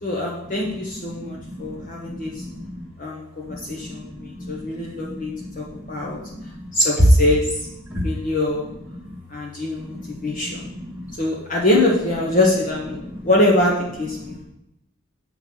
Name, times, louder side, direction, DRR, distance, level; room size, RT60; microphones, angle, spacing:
voice 1, 0.0-2.4 3.0-6.2 6.7-7.6 8.0-8.6 9.3-10.6 11.2-14.4, left 1 dB, 40° left, -3 dB, 1.0 m, -23 dB
voice 2, 1.1-2.9 3.5-6.6 7.9-8.1 8.9-9.2 9.8-11.2 13.0-13.3 14.2-14.4, left 1 dB, 5° right, -8 dB, 1.1 m, -37 dB
7.5 x 3.9 x 6.1 m, 0.84 s
head